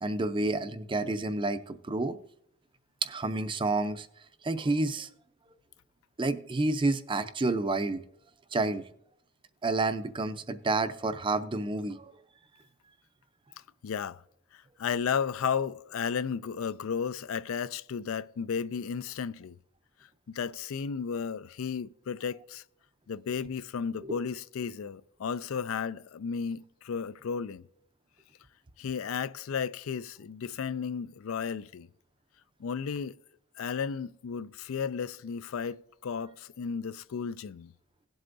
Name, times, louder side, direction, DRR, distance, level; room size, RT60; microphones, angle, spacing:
voice 1, 0.0-2.2 3.0-4.1 4.4-5.1 6.2-8.0 8.5-8.8 9.6-12.1 24.0-24.2, right 2 dB, 25° right, 0.5 m, -29 dB
voice 2, 13.8-14.2 14.5-19.6 20.3-22.6 23.1-27.7 28.8-31.9 32.6-33.2 33.6-37.7, left 6 dB, 70° left, 0.4 m, -34 dB
17.5 x 7.8 x 2.6 m
head